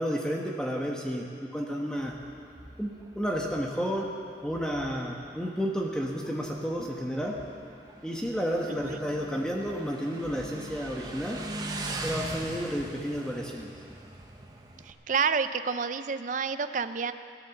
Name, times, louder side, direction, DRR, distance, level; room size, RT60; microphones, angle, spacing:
voice 1, 0.0-2.2 2.8-4.1 4.4-7.4 8.0-11.4 12.0-13.7, equal, 5° left, -1 dB, 1.1 m, -31 dB
Motorcycle, 2.0-14.9, right 2 dB, 20° right, 1.1 m, -41 dB
voice 2, 14.8-17.1, right 5 dB, 45° right, 10 dB, 0.5 m, -29 dB
17.0 x 11.0 x 7.1 m, 2.6 s
head